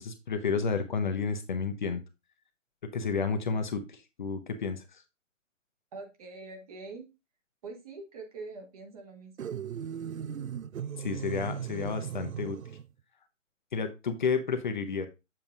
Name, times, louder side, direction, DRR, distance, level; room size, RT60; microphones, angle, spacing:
voice 1, 0.0-2.0 2.9-5.0 11.0-12.6 13.7-15.1, left 5 dB, 35° left, 7 dB, 0.8 m, -31 dB
voice 2, 5.9-7.1 7.6-9.5, right 3 dB, 30° right, 3 dB, 1.2 m, -44 dB
sound 1, 9.4-12.9, right 8 dB, 85° right, 0.5 m, -37 dB
7.4 x 6.6 x 2.5 m, 0.25 s
figure-of-eight pair, 140°, 40 cm